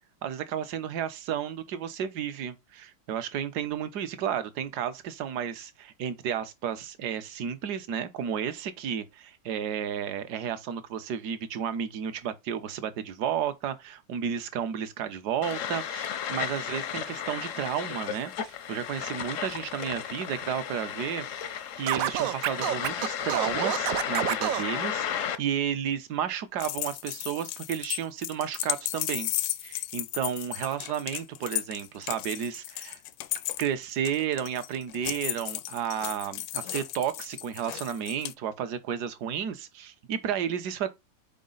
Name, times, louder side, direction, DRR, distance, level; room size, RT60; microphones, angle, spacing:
voice 1, 0.2-21.5 21.8-29.3 29.6-33.0 33.6-40.9, right 8 dB, 65° right, 1.3 m, -32 dB
sound 1, 15.4-25.4, left 9 dB, 65° left, 0.7 m, -34 dB
Scratching (performance technique), 21.9-24.7, right 12 dB, 85° right, 0.7 m, -28 dB
sound 2, 26.6-38.3, left 15 dB, 85° left, 1.3 m, -34 dB
5.2 x 4.7 x 3.8 m
omnidirectional pair, 2.0 m